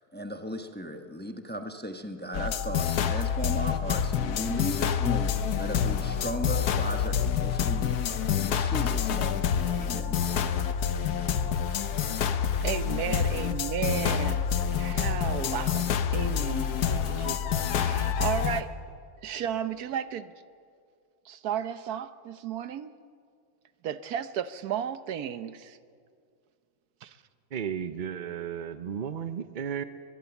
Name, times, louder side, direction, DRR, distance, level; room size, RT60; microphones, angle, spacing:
voice 1, 0.0-10.2, equal, 10° left, 6 dB, 0.9 m, -37 dB
sound 1, 2.3-18.6, left 8 dB, 80° left, 1.4 m, -27 dB
voice 2, 12.6-14.4 14.7-15.9 16.1-18.7 19.2-20.3 21.3-22.9 23.8-25.8 27.0-27.2, right 9 dB, 75° right, 12 dB, 1.3 m, -34 dB
voice 3, 27.5-29.8, right 8 dB, 55° right, 11 dB, 0.5 m, -34 dB
23.0 x 21.5 x 7.1 m, 2.2 s
omnidirectional pair, 1.7 m